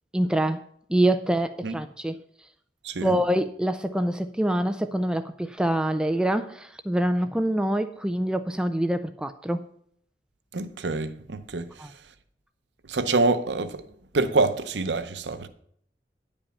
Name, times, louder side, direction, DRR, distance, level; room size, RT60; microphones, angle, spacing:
voice 1, 0.1-0.6 0.9-2.2 3.0-9.7 11.8-11.9, right 1 dB, 5° right, 0.3 m, -25 dB
voice 2, 2.8-3.2 10.5-11.9 12.9-13.8 14.1-15.5, right 3 dB, 80° right, 0.8 m, -26 dB
10.0 x 5.3 x 7.0 m
head